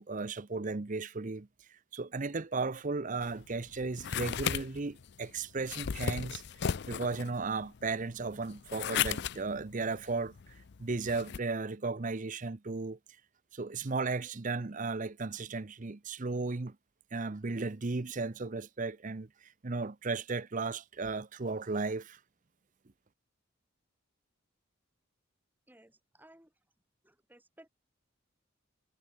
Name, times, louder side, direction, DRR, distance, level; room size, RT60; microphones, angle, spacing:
voice 1, 0.0-6.4 6.9-10.3 10.8-13.0 13.5-16.8 17.1-19.3 19.6-22.2, right 3 dB, 35° right, 0.7 m, -35 dB
sound 1, 3.2-11.4, left 8 dB, 50° left, 0.5 m, -36 dB
voice 2, 25.7-26.5 27.0-27.7, right 1 dB, 10° right, 2.9 m, -59 dB
head